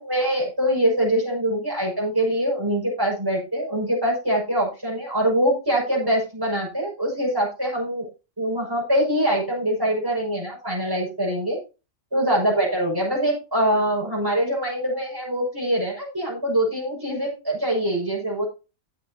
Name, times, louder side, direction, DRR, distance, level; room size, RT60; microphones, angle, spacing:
voice 1, 0.0-8.1 8.4-11.6 12.1-18.4, right 1 dB, 15° right, -2 dB, 6.3 m, -24 dB
17.0 x 6.7 x 2.9 m, 0.30 s
omnidirectional pair, 1.4 m